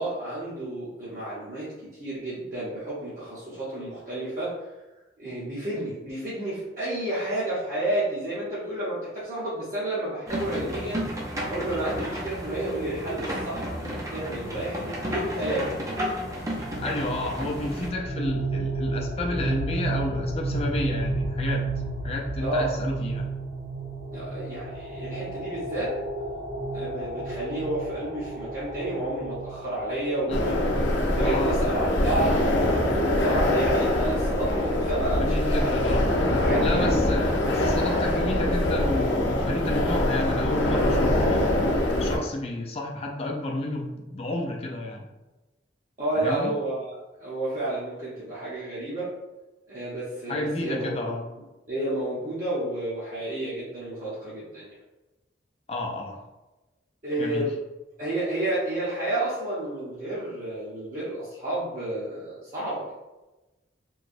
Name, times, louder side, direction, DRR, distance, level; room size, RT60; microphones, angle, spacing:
voice 1, 0.0-4.7 5.2-11.0 11.5-15.8 22.4-22.7 24.1-26.0 26.7-30.7 31.1-37.1 46.0-49.1 49.7-50.9 51.7-54.7 57.0-57.5 58.0-62.9, right 1 dB, 45° right, -11 dB, 0.8 m, -31 dB
sound 1, 10.3-17.9, equal, 20° right, 0.5 m, -32 dB
sound 2, 16.4-31.3, right 2 dB, 75° right, 1.2 m, -32 dB
voice 2, 16.8-21.6 22.0-23.3 30.3-30.4 31.2-31.6 35.2-36.1 36.6-41.5 42.0-45.1 46.2-46.6 50.3-51.2 55.7-56.2 57.2-57.5, left 2 dB, 35° left, 0 dB, 0.4 m, -31 dB
sound 3, 30.3-42.2, left 1 dB, 90° left, 0.5 m, -23 dB
3.1 x 2.8 x 2.5 m, 1.1 s
head